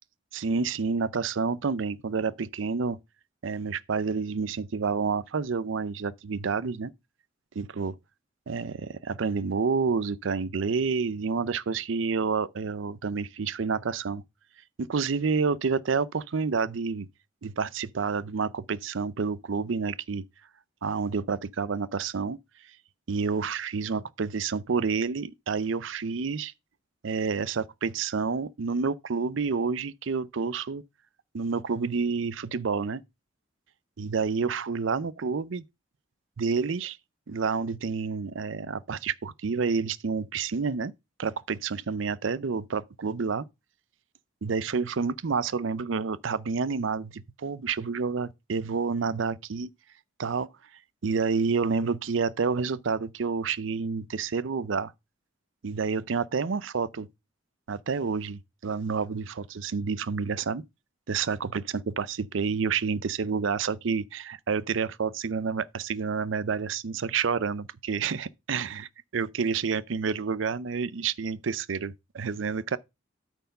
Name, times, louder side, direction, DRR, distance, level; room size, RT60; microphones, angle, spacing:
voice 1, 0.3-3.0 3.4-6.9 7.6-8.0 8.5-14.2 14.8-17.1 17.4-20.2 20.8-22.4 23.1-26.5 27.0-30.8 31.3-33.0 34.0-35.6 36.4-37.0 37.3-40.9 41.2-43.4 44.4-49.7 50.2-50.5 51.0-54.9 55.6-57.1 57.7-60.6 61.1-72.8, right 5 dB, 70° right, 0.5 m, -29 dB
9.1 x 4.6 x 5.4 m
head